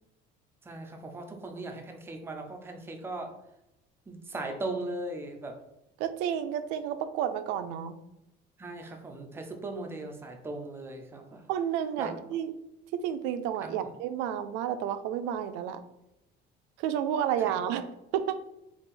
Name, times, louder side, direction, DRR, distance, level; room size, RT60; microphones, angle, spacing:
voice 1, 0.6-3.3 4.1-5.6 8.6-11.5 12.0-12.1 13.6-13.9 17.4-17.5, right 2 dB, 10° right, 4 dB, 0.4 m, -38 dB
voice 2, 6.0-8.0 11.5-12.5 12.9-15.8 16.8-17.9 18.1-18.4, right 9 dB, 80° right, 10 dB, 0.4 m, -31 dB
4.1 x 2.4 x 3.7 m, 0.87 s
cardioid pair, 170°, 19 cm